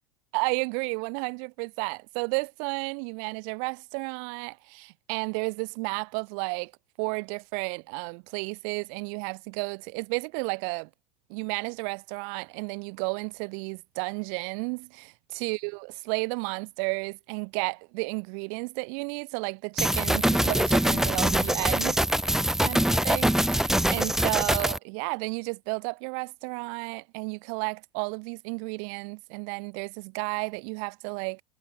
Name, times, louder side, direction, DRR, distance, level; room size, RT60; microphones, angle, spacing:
voice 1, 0.3-6.7 7.0-10.9 11.3-22.0 22.6-22.8 23.0-31.4, right 40 dB or more, 50° right, 4.1 m, -32 dB
sound 1, 19.8-24.8, right 1 dB, ahead, 2.3 m, -24 dB
figure-of-eight pair, 85°, 21 cm